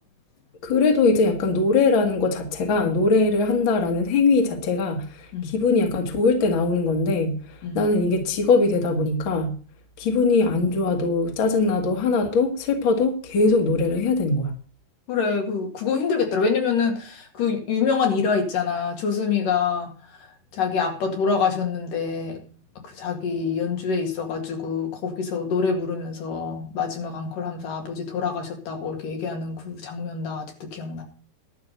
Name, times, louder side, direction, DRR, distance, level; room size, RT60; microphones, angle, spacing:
voice 1, 0.6-9.6 10.0-14.5, left 3 dB, 40° left, 4 dB, 2.2 m, -21 dB
voice 2, 15.1-19.9 20.5-22.4 23.0-31.0, left 5 dB, 70° left, 3 dB, 3.7 m, -26 dB
12.0 x 5.9 x 8.1 m, 0.39 s
omnidirectional pair, 4.1 m